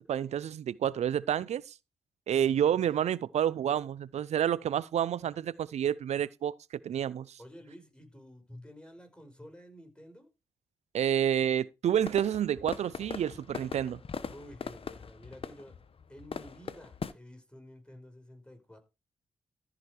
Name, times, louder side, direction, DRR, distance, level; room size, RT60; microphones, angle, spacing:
voice 1, 0.1-1.7 2.3-6.6 6.8-7.4 10.9-14.0, right 9 dB, 75° right, 0.6 m, -29 dB
voice 2, 2.4-2.8 7.4-10.3 14.3-15.8 16.1-18.8, equal, 10° left, 4.9 m, -51 dB
sound 1, 12.0-17.1, left 6 dB, 55° left, 1.0 m, -41 dB
14.0 x 4.9 x 4.6 m
supercardioid pair, 45°, 12 cm